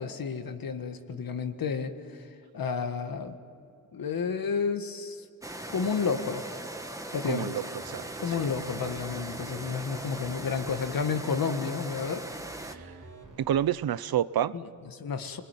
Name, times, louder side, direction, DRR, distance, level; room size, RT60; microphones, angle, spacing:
voice 1, 0.0-3.4 3.9-5.3 5.7-6.4 7.1-7.5 8.2-12.2 14.5-15.4, left 5 dB, 75° left, 7 dB, 1.7 m, -31 dB
sound 1, 5.4-12.8, right 1 dB, 10° right, 1.4 m, -39 dB
voice 2, 7.3-8.4 12.6-12.9 13.4-14.5, right 10 dB, 85° right, 16 dB, 0.7 m, -29 dB
sound 2, 7.8-13.5, right 3 dB, 55° right, 3.1 m, -51 dB
28.5 x 21.0 x 9.3 m, 2.6 s
wide cardioid pair, 110°, 35 cm